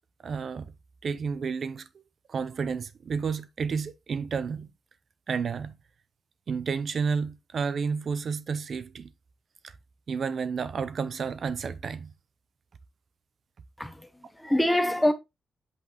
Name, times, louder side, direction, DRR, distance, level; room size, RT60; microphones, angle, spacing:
voice 1, 0.2-0.7 1.0-1.9 2.3-4.7 5.3-5.7 6.5-9.1 9.6-9.7 10.1-12.1, right 5 dB, 50° right, 0.7 m, -31 dB
voice 2, 13.8-15.1, left 1 dB, 5° left, 1.2 m, -25 dB
8.3 x 5.4 x 3.0 m
wide cardioid pair, 135°, 0 cm